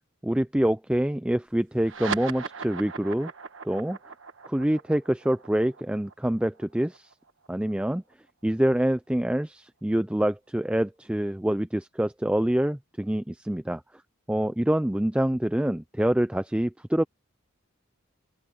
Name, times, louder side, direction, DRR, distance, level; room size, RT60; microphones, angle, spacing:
voice 1, 0.2-3.3 3.6-4.0 4.4-7.1 7.5-8.0 8.4-13.8 14.3-17.0, right 1 dB, 5° right, 0.3 m, -26 dB
sound 1, 1.8-8.6, right 5 dB, 70° right, 1.3 m, -39 dB
open air
head